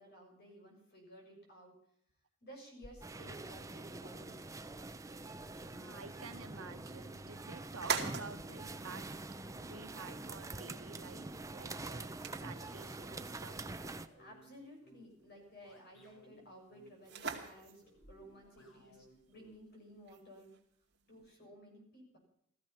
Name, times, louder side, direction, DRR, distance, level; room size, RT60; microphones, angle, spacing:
voice 1, 0.0-1.8 2.4-4.3 13.8-20.5 21.1-22.2, equal, 50° left, 0 dB, 6.4 m, -56 dB
sound 1, 2.8-21.2, right 6 dB, 50° right, 2.4 m, -47 dB
sound 2, 3.0-14.1, right 2 dB, 15° right, 0.6 m, -45 dB
voice 2, 5.3-9.0 9.6-11.2 11.5-12.1 12.4-13.6, right 4 dB, 85° right, 8 dB, 1.4 m, -51 dB
sound 3, 6.6-19.7, equal, 75° left, 7.9 m, -64 dB
16.0 x 14.5 x 5.8 m, 0.71 s
head